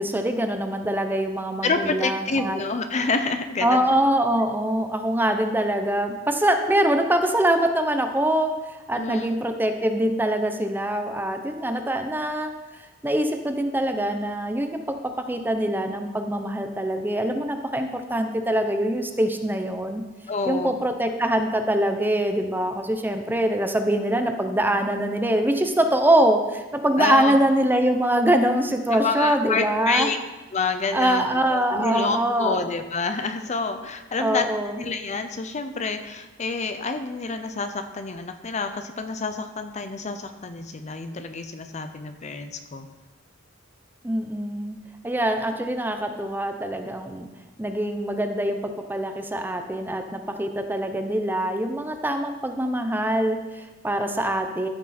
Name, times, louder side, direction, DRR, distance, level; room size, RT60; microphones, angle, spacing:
voice 1, 0.0-2.6 3.6-8.5 8.9-14.8 15.3-20.0 20.5-30.1 30.9-32.6 34.2-34.8 44.0-44.8 45.0-47.3 47.6-54.7, right 1 dB, 10° right, 6 dB, 0.7 m, -24 dB
voice 2, 1.6-3.8 8.9-9.4 20.3-20.8 27.0-27.4 28.9-30.2 30.5-34.5 34.8-42.9, left 4 dB, 35° left, 8 dB, 0.6 m, -28 dB
13.5 x 6.1 x 4.2 m, 1.1 s
head